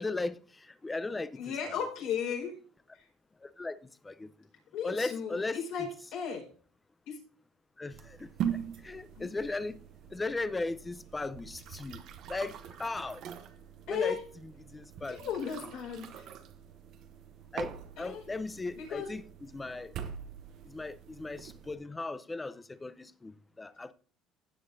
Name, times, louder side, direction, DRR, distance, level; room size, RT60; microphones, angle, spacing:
voice 1, 0.0-1.7 3.4-3.7 4.0-4.3 4.8-5.6 7.8-8.3 8.8-9.8 10.1-12.0 12.3-13.2 13.9-14.2 14.7-15.2 17.5-19.9 20.7-23.9, left 3 dB, 15° left, 0.6 m, -37 dB
voice 2, 1.4-2.6 2.9-3.1 4.7-6.5 7.1-7.2 9.2-9.3 13.9-14.2 15.1-16.3 18.0-18.2 18.7-19.1, left 7 dB, 70° left, 4.6 m, -35 dB
sound 1, 7.9-21.7, right 9 dB, 60° right, 0.9 m, -43 dB
16.0 x 7.3 x 2.7 m
supercardioid pair, 100°, 0 cm